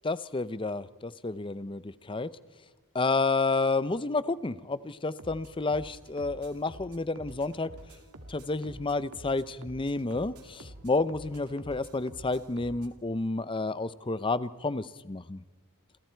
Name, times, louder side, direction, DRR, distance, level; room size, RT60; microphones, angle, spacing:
voice 1, 0.0-2.3 2.9-7.7 8.3-15.4, left 3 dB, 20° left, 16 dB, 0.6 m, -30 dB
sound 1, 5.2-13.0, right 1 dB, 80° right, 2.4 m, -49 dB
28.5 x 27.5 x 4.6 m, 1.3 s
head